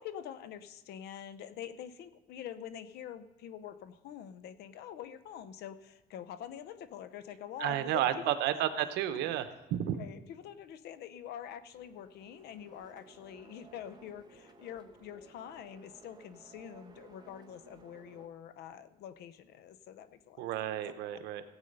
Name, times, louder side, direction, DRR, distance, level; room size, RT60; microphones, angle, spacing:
voice 1, 0.0-8.3 10.0-20.9, left 9 dB, 75° left, 13 dB, 0.8 m, -46 dB
voice 2, 7.6-10.0 20.4-21.4, right 11 dB, 90° right, 10 dB, 0.9 m, -32 dB
sound 1, 11.7-18.3, right 5 dB, 25° right, 1.3 m, -58 dB
16.0 x 8.2 x 5.4 m, 1.1 s
cardioid pair, 110°, 17 cm